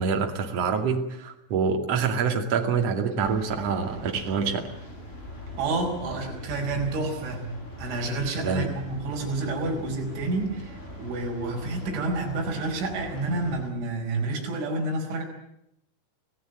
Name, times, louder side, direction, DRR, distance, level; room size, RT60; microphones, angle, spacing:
voice 1, 0.0-4.7 8.4-8.7, right 5 dB, 40° right, 3 dB, 2.6 m, -26 dB
sound 1, 3.2-13.7, left 1 dB, 10° left, 5.1 m, -42 dB
voice 2, 5.6-15.2, right 2 dB, 65° right, 1 dB, 7.1 m, -29 dB
25.0 x 17.5 x 9.1 m, 0.80 s
omnidirectional pair, 5.9 m